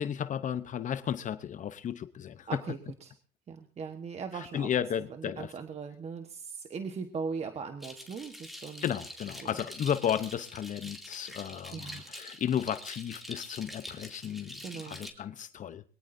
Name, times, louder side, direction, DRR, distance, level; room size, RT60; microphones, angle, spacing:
voice 1, 0.0-2.5 4.3-5.5 8.8-15.8, left 9 dB, 50° left, 0.9 m, -34 dB
voice 2, 2.5-3.1 3.5-4.7 5.1-8.8 9.4-9.5 11.7-12.1 14.6-15.0, right 5 dB, 40° right, 1.3 m, -39 dB
sound 1, 7.8-15.1, left 1 dB, ahead, 2.7 m, -45 dB
22.5 x 18.0 x 2.7 m
cardioid pair, 110°, 17 cm